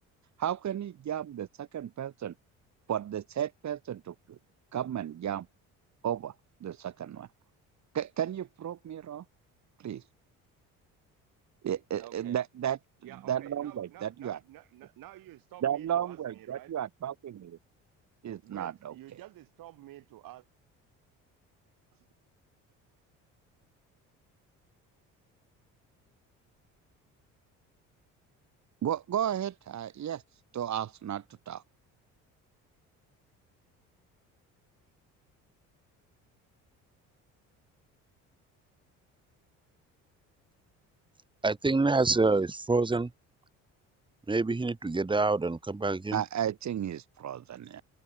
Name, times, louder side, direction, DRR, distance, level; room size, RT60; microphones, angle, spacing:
voice 1, 0.4-2.3 2.9-4.4 4.7-5.5 6.0-6.3 6.6-7.3 7.9-9.2 9.8-10.0 11.6-12.8 13.3-14.4 15.6-17.6 18.2-18.9 28.8-30.2 30.5-31.6 46.1-47.8, right 10 dB, 50° right, 2.0 m, -33 dB
voice 2, 11.9-12.4 13.0-16.7 18.4-20.5 21.9-22.0, right 15 dB, 70° right, 4.0 m, -50 dB
voice 3, 41.4-43.1 44.3-46.2, right 3 dB, 15° right, 1.3 m, -26 dB
supercardioid pair, 70°, 35 cm